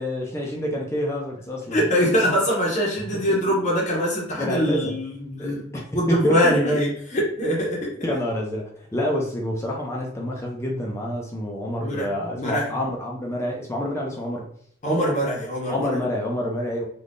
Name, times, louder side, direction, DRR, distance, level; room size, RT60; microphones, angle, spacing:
voice 1, 0.0-1.8 3.1-3.4 4.4-4.9 5.4-6.8 8.0-14.5 15.7-16.8, left 1 dB, 15° left, -1 dB, 0.4 m, -27 dB
voice 2, 1.7-5.6 5.9-7.9 11.8-12.1 12.4-12.7 14.8-15.9, equal, 40° left, -3 dB, 0.7 m, -23 dB
3.4 x 2.3 x 2.5 m, 0.62 s
head